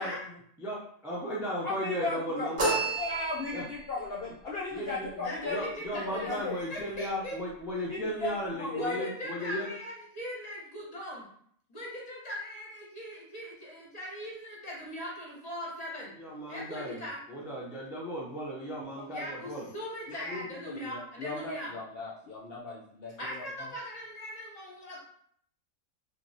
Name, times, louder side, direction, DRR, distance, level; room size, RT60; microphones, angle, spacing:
voice 1, 0.0-0.4 1.6-2.5 3.0-5.7 6.0-6.5 7.9-9.1 19.0-19.1 20.1-23.7, left 3 dB, 60° left, -4 dB, 0.6 m, -37 dB
voice 2, 1.0-2.8 3.5-3.6 4.7-9.7 16.2-17.0 17.3-19.7, equal, 5° right, -5 dB, 0.3 m, -36 dB
sound 1, 2.6-3.8, right 3 dB, 50° right, 0.8 m, -30 dB
voice 3, 5.2-7.4 8.7-11.3 11.7-16.1 16.5-17.2 19.1-21.7 23.2-25.0, equal, 35° left, -3 dB, 0.9 m, -40 dB
3.0 x 2.5 x 2.6 m, 0.64 s
omnidirectional pair, 1.4 m